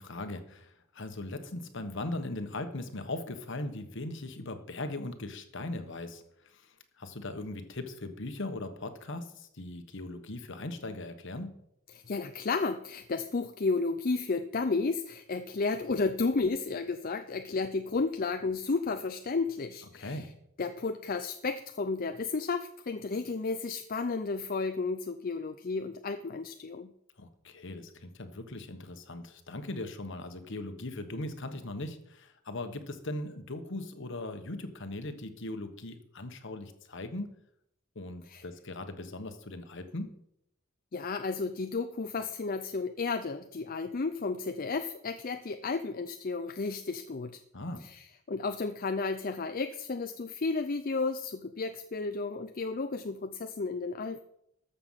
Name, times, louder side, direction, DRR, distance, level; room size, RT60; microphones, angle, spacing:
voice 1, 0.0-11.6 19.9-20.3 27.2-37.3 37.9-40.1 47.5-47.8, left 2 dB, 60° left, 8 dB, 1.3 m, -39 dB
voice 2, 11.9-20.3 20.6-26.9 38.3-38.4 40.9-47.4 47.8-48.0 48.3-54.2, left 4 dB, 45° left, 8 dB, 0.5 m, -32 dB
13.5 x 6.9 x 5.7 m, 0.75 s
head